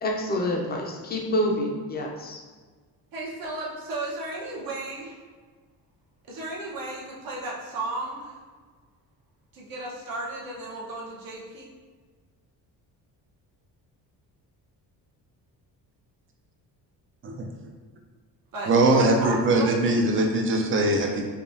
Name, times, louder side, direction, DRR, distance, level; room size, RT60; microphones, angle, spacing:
voice 1, 0.0-2.4, left 1 dB, 25° left, -1 dB, 0.5 m, -27 dB
voice 2, 3.1-5.2 6.3-8.4 9.5-11.7 18.5-19.8, right 2 dB, 60° right, -4 dB, 1.0 m, -34 dB
voice 3, 18.7-21.2, right 2 dB, 35° right, 2 dB, 0.5 m, -21 dB
5.0 x 2.3 x 2.6 m, 1.5 s
cardioid pair, 140°, 39 cm